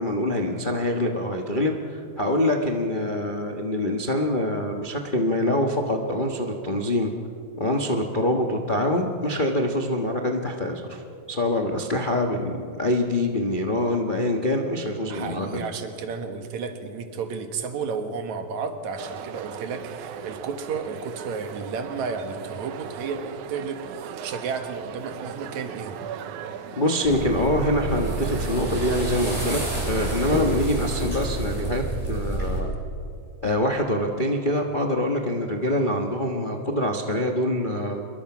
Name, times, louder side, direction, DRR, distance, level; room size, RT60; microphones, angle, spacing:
voice 1, 0.0-7.1 7.6-11.0 11.3-15.6 26.8-29.6 29.9-31.8 32.1-32.7 33.4-38.1, left 1 dB, 85° left, 2 dB, 0.4 m, -25 dB
voice 2, 15.1-26.1, right 5 dB, 70° right, 7 dB, 2.8 m, -32 dB
sound 1, 18.9-30.6, right 9 dB, 90° right, 2.4 m, -38 dB
sound 2, 27.0-32.6, right 2 dB, 15° right, 7.0 m, -29 dB
26.0 x 22.5 x 6.1 m, 2.5 s
omnidirectional pair, 3.4 m